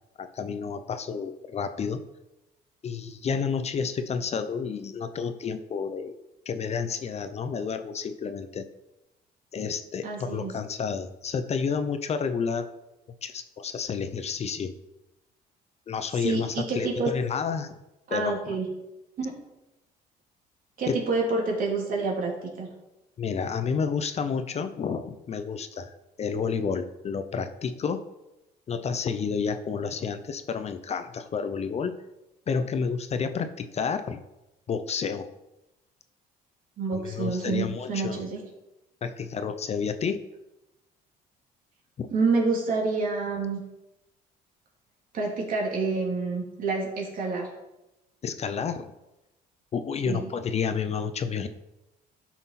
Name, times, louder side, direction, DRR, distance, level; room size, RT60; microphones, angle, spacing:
voice 1, 0.2-2.0 2.8-6.1 6.5-8.6 9.5-12.7 13.2-14.7 15.9-17.7 18.1-18.5 20.9-21.0 23.2-25.9 26.2-28.0 28.7-32.0 32.5-34.2 34.7-35.3 36.9-38.2 39.0-40.2 42.0-42.1 48.2-48.9 49.7-51.5, left 6 dB, 40° left, 10 dB, 0.7 m, -30 dB
voice 2, 10.0-10.5 16.2-17.1 18.1-18.7 19.2-19.4 20.8-22.7 36.8-38.4 42.1-43.6 45.1-47.5 50.0-50.3, right 4 dB, 55° right, -1 dB, 3.0 m, -28 dB
12.5 x 6.0 x 4.2 m, 0.95 s
cardioid pair, 110°, 17 cm